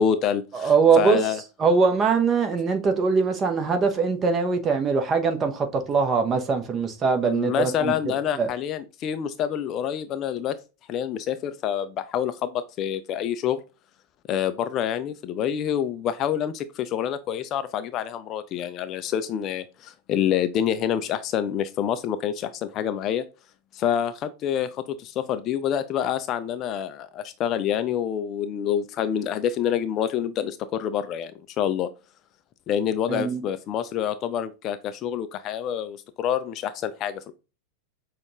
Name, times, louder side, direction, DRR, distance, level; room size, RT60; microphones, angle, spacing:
voice 1, 0.0-1.4 7.2-10.6 10.9-13.6 14.3-23.2 23.7-31.3 31.6-31.9 32.7-37.3, left 9 dB, 35° left, 0.3 m, -27 dB
voice 2, 0.5-1.2 1.6-7.9 8.3-8.5 33.1-33.4, right 5 dB, 25° right, 0.9 m, -22 dB
6.1 x 2.3 x 3.0 m
figure-of-eight pair, 90°, 0 cm